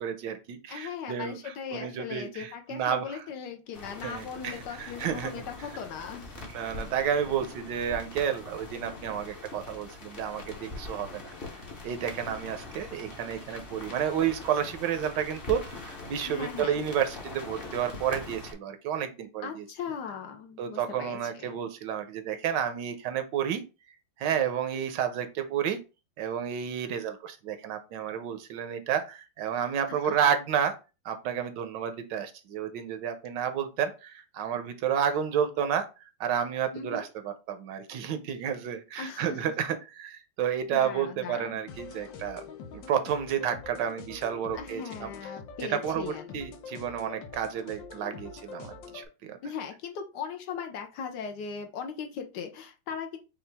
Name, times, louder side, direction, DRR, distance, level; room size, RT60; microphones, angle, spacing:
voice 1, 0.0-3.2 4.0-5.4 6.4-11.1 11.8-19.6 20.6-23.6 24.2-25.8 26.2-30.7 31.0-35.9 36.2-42.4 42.7-45.1 45.7-49.4, right 8 dB, 75° right, 8 dB, 1.2 m, -31 dB
voice 2, 0.7-6.4 16.3-16.7 19.4-21.6 29.9-30.1 36.7-37.1 39.0-39.4 40.7-41.6 44.5-46.4 49.4-53.2, left 7 dB, 70° left, 5 dB, 1.2 m, -39 dB
sound 1, 3.7-18.5, left 3 dB, 35° left, 1.0 m, -43 dB
sound 2, 41.7-49.1, left 5 dB, 85° left, 1.5 m, -44 dB
5.6 x 2.3 x 3.3 m, 0.30 s
omnidirectional pair, 2.0 m